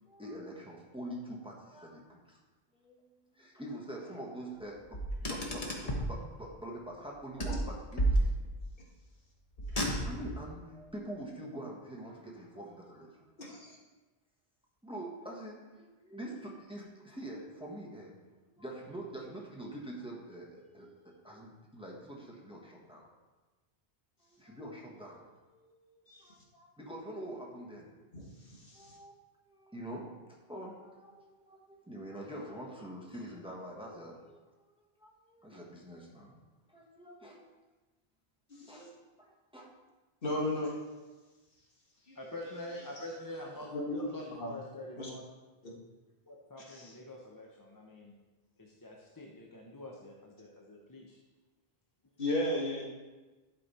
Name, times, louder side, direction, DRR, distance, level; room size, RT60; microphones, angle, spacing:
voice 1, 0.1-2.4 2.8-3.0 3.3-8.3 9.7-13.2 14.8-18.1 18.4-23.1 24.2-27.9 28.7-29.1 29.5-34.7 35.0-36.4 36.7-37.4 38.7-38.8 39.2-39.7, right 1 dB, 5° right, -2 dB, 1.4 m, -45 dB
Car, 4.9-6.2 7.4-8.7 9.6-10.4, right 1 dB, 35° left, 1.3 m, -31 dB
voice 2, 13.4-13.8 26.1-26.2 28.5-29.0 38.5-38.9 40.2-40.8 42.1-42.2 43.7-44.5 45.0-45.1 45.6-45.7 46.7-46.9 52.2-52.9, left 1 dB, 60° left, -2 dB, 1.7 m, -35 dB
voice 3, 42.2-45.2 46.3-48.1 48.6-51.2, left 1 dB, 20° left, -1 dB, 0.8 m, -46 dB
11.5 x 5.5 x 4.2 m, 1.2 s
omnidirectional pair, 1.0 m